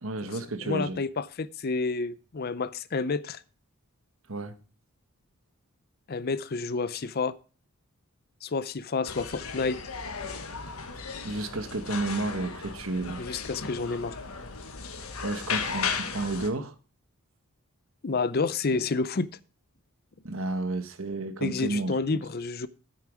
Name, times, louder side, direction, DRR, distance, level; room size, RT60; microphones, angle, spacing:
voice 1, 0.0-1.0 4.3-4.6 11.2-13.2 15.2-16.7 20.2-22.2, right 2 dB, 65° right, 1.2 m, -32 dB
voice 2, 0.6-3.4 6.1-7.3 8.4-9.8 13.2-14.2 18.0-19.3 21.4-22.7, left 4 dB, 45° left, 0.6 m, -29 dB
sound 1, 9.0-16.5, left 5 dB, 75° left, 1.5 m, -35 dB
9.4 x 9.3 x 4.8 m
head